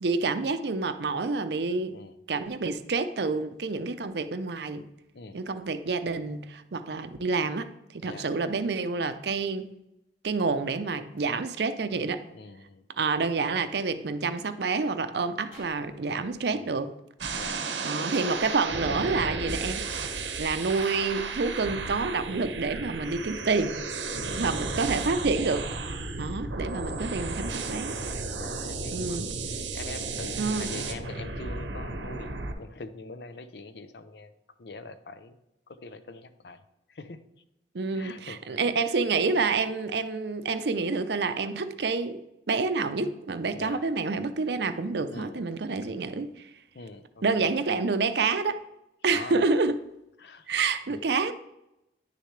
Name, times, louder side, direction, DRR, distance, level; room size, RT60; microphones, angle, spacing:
voice 1, 0.0-2.0 2.3-4.8 5.3-7.7 7.9-9.7 10.2-12.2 13.0-16.9 17.8-19.9 20.4-23.8 24.4-25.7 26.2-28.0 28.9-29.3 30.4-30.7 37.7-42.2 42.5-46.4 47.2-48.6 49.0-49.8 50.5-51.3, right 4 dB, 65° right, 11 dB, 0.5 m, -28 dB
voice 2, 12.3-12.8 16.5-16.8 17.3-17.8 24.1-25.0 28.3-29.2 29.5-34.3 34.6-35.4 35.7-36.6 36.9-37.2 37.9-38.4 43.5-43.8 45.1-45.5 45.8-45.9 46.7-47.5 49.1-49.4 50.2-50.5 50.9-51.0, left 3 dB, 65° left, 11 dB, 0.6 m, -44 dB
sound 1, 15.5-16.3 18.1-19.1 20.8-22.0 23.3-23.9, left 1 dB, 40° left, 3.0 m, -50 dB
sound 2, 17.2-32.5, right 3 dB, 85° right, 0.9 m, -34 dB
10.0 x 6.6 x 3.2 m, 0.87 s
head